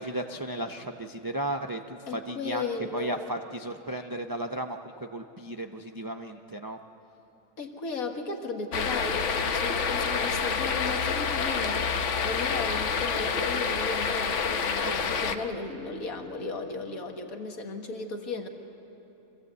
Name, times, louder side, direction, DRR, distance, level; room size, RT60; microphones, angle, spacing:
voice 1, 0.0-6.8 14.8-15.5, right 1 dB, 30° right, 4 dB, 0.4 m, -35 dB
voice 2, 2.1-3.3 7.6-18.5, left 3 dB, 90° left, 4 dB, 1.9 m, -35 dB
sound 1, 8.7-15.4, left 5 dB, 60° left, 1.2 m, -28 dB
25.0 x 15.5 x 8.1 m, 3.0 s
omnidirectional pair, 1.4 m